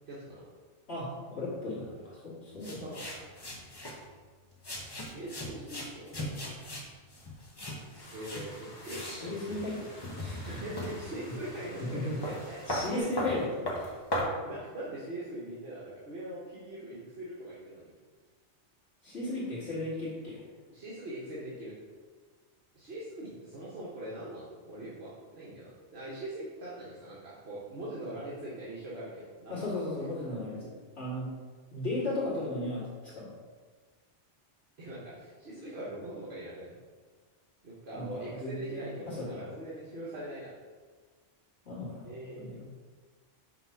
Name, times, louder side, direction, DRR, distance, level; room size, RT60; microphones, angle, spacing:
voice 1, 0.1-0.4 2.6-3.1 5.1-6.1 8.1-8.5 8.8-9.4 10.5-13.1 14.3-17.9 20.7-21.8 22.7-29.8 34.8-36.7 37.6-40.5 42.0-42.6, right 1 dB, 60° right, -7 dB, 1.4 m, -42 dB
voice 2, 1.4-2.8 9.0-10.6 11.9-12.2 12.7-13.9 19.0-20.4 29.5-30.6 31.0-31.3 31.7-33.3 37.9-39.5 41.7-42.1 42.4-42.6, left 2 dB, 60° left, -8 dB, 2.3 m, -36 dB
sound 1, 2.6-4.0 4.6-8.5 8.8-9.2 9.5-11.0 11.6-11.7 11.9-14.3, equal, 20° left, 0.9 m, -38 dB
sound 2, 8.0-13.0, left 1 dB, 40° left, 1.4 m, -50 dB
5.8 x 3.9 x 5.6 m, 1.5 s
omnidirectional pair, 1.2 m